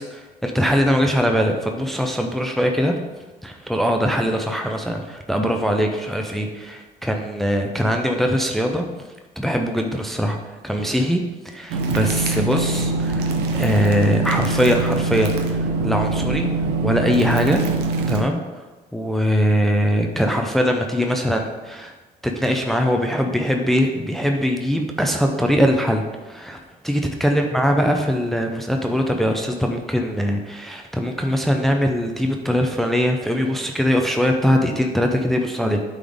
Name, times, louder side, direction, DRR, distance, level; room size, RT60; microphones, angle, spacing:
voice 1, 0.0-3.0 3.4-8.9 9.4-16.5 16.8-17.6 18.1-18.6 18.9-21.9 22.2-26.6 26.8-35.8, equal, ahead, 3 dB, 0.6 m, -21 dB
sound 1, 11.7-18.2, right 3 dB, 80° right, 0.8 m, -23 dB
8.2 x 3.9 x 3.6 m, 1.2 s
cardioid pair, 110°, 17 cm